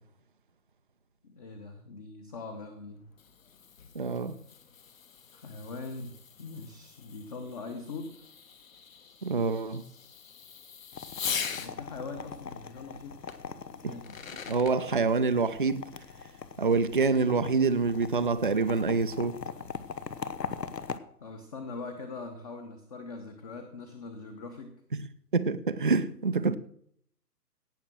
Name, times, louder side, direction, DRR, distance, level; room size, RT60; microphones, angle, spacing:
voice 1, 1.2-3.0 5.3-8.2 11.5-13.2 13.7-14.2 21.2-24.7, left 3 dB, 25° left, 1.0 m, -42 dB
Fireworks, 2.9-11.7 13.3-13.4 13.9-14.8, left 7 dB, 55° left, 1.6 m, -41 dB
voice 2, 4.0-4.4 9.2-9.8 13.8-14.0 14.5-15.9 16.6-19.4 24.9-25.0 25.3-26.6, right 4 dB, 35° right, 0.4 m, -26 dB
sound 1, 10.9-21.0, left 6 dB, 80° left, 1.2 m, -41 dB
17.5 x 6.6 x 6.1 m
figure-of-eight pair, 150°, 49 cm